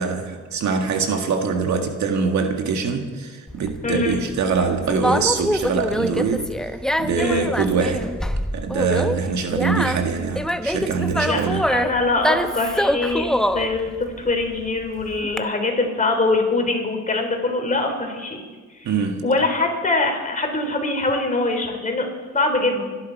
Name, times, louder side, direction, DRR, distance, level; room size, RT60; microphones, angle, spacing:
voice 1, 0.0-6.5 7.0-8.1 8.5-11.7 18.8-19.3, right 5 dB, 70° right, 4 dB, 1.9 m, -23 dB
Conversation, 3.5-15.4, equal, ahead, 0.8 m, -25 dB
voice 2, 3.8-4.2 7.2-7.5 11.2-13.9 14.2-18.4 18.8-18.9 19.2-22.1 22.3-22.9, left 2 dB, 25° left, 3 dB, 3.7 m, -23 dB
25.5 x 11.0 x 4.7 m, 1.4 s
cardioid pair, 90°, 30 cm